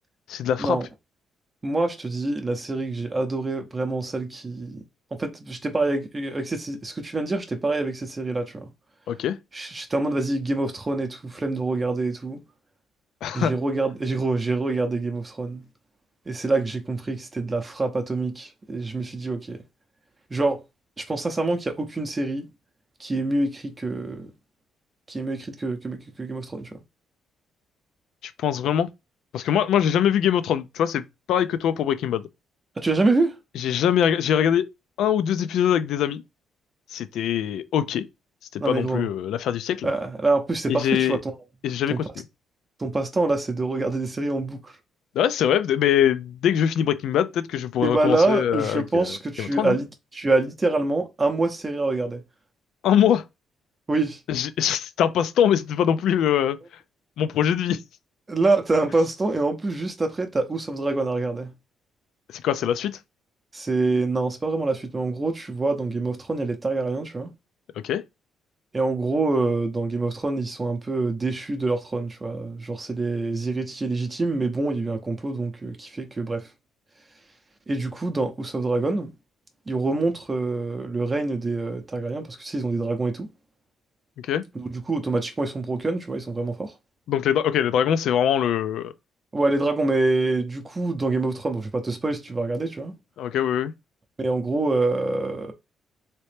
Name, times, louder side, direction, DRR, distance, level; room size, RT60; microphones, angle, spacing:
voice 1, 0.3-0.8 9.1-9.4 13.2-13.5 28.4-28.9 29.3-32.3 33.6-34.7 35.0-36.2 36.9-38.1 38.5-39.9 40.7-41.2 41.6-42.1 45.2-49.8 52.8-53.2 54.3-56.6 57.2-57.8 62.3-63.0 67.8-68.0 84.2-84.4 87.1-88.9 93.2-93.7, left 9 dB, 75° left, 0.4 m, -23 dB
voice 2, 1.6-4.8 5.2-8.7 9.5-12.4 13.3-15.6 16.3-19.6 20.3-20.6 21.0-22.5 23.0-24.3 25.1-26.8 32.8-33.4 38.6-39.1 39.8-41.3 41.9-42.0 42.8-44.8 47.8-52.2 53.9-54.2 58.3-61.5 63.5-67.3 68.7-76.5 77.7-79.1 79.7-83.3 84.5-86.7 89.3-92.9 94.2-95.5, right 2 dB, 25° right, 0.6 m, -26 dB
3.2 x 2.9 x 3.2 m
cardioid pair, 120°, 0 cm